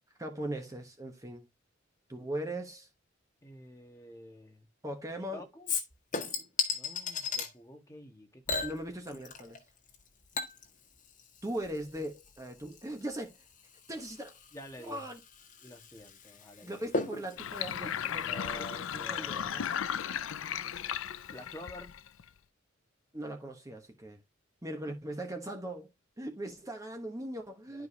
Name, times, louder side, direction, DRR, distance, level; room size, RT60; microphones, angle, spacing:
voice 1, 0.2-1.5 2.1-2.9 4.8-5.4 8.6-9.6 11.4-13.4 13.9-14.4 14.8-15.2 16.6-19.6 23.1-24.2 24.6-25.9 26.2-27.9, right 1 dB, 15° right, 1.0 m, -39 dB
voice 2, 3.4-4.7 5.3-5.7 6.7-8.8 14.5-15.0 15.6-16.8 18.1-20.2 21.3-21.9 27.7-27.9, left 1 dB, 15° left, 1.6 m, -49 dB
Chink clink / Liquid, 5.7-7.5 8.5-9.6 9.9-18.9 19.3-19.4, left 4 dB, 40° left, 1.6 m, -38 dB
Sink (filling or washing), 17.4-22.3, left 9 dB, 75° left, 0.5 m, -36 dB
11.5 x 4.9 x 2.8 m
head